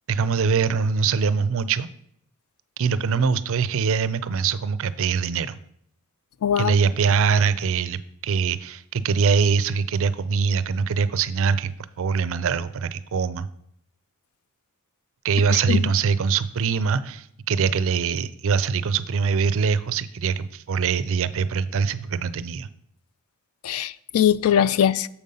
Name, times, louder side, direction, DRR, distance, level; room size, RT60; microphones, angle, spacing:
voice 1, 0.1-1.9 2.8-5.6 6.6-13.5 15.2-22.7, right 5 dB, 60° right, 0.4 m, -23 dB
voice 2, 6.4-6.8 15.5-15.9 23.6-25.1, left 9 dB, 70° left, 0.3 m, -21 dB
7.1 x 5.2 x 5.4 m
head